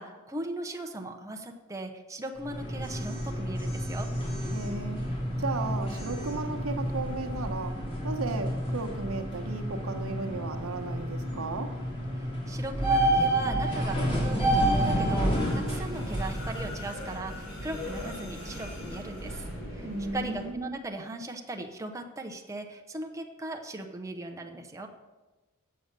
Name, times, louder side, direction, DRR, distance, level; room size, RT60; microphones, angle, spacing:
voice 1, 0.0-4.1 12.2-19.4 19.7-24.9, right 2 dB, 15° right, 2 dB, 0.7 m, -38 dB
sound 1, 2.4-16.8, right 1 dB, 25° left, 3.1 m, -29 dB
voice 2, 4.5-5.0 5.4-7.8 8.0-11.7 19.8-20.7, right 3 dB, 80° right, 5 dB, 1.0 m, -35 dB
sound 2, 14.8-20.5, equal, 80° left, 4.1 m, -40 dB
8.2 x 7.7 x 6.7 m, 1.2 s
head